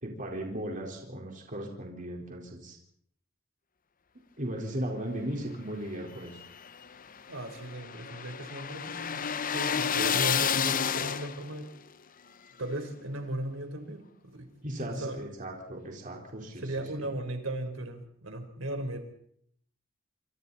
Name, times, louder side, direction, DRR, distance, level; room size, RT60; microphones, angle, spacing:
voice 1, 0.0-2.8 4.4-6.4 14.6-17.1, right 1 dB, 40° right, 0 dB, 4.4 m, -37 dB
sound 1, 6.1-11.6, left 7 dB, 45° left, 0.8 m, -30 dB
voice 2, 7.3-9.3 9.5-11.7 12.6-14.5 14.8-15.2 16.6-19.0, right 1 dB, 85° right, 6 dB, 4.3 m, -36 dB
27.0 x 27.0 x 4.2 m, 0.68 s
head